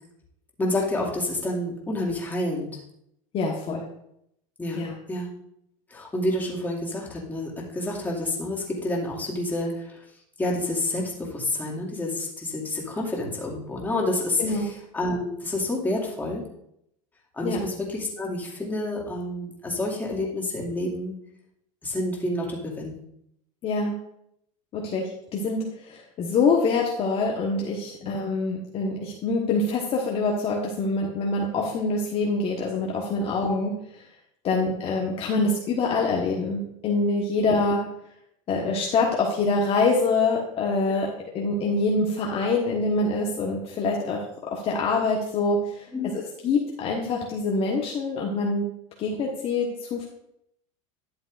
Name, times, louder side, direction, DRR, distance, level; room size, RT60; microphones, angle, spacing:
voice 1, 0.6-2.7 3.7-3.8 4.6-5.3 5.9-10.0 10.4-16.4 17.3-21.1 21.8-23.0 28.0-28.1 40.9-41.0 45.9-46.2, left 1 dB, 10° left, -3 dB, 2.3 m, -29 dB
voice 2, 3.3-3.8 4.7-4.9 14.4-14.7 17.4-17.6 23.6-23.9 24.7-34.0 34.4-37.8 38.5-41.1 41.3-44.2 44.5-45.9 46.1-48.7 49.0-50.0, left 3 dB, 35° left, -1 dB, 1.2 m, -25 dB
11.5 x 7.2 x 2.5 m, 0.75 s
supercardioid pair, 120°, 16 cm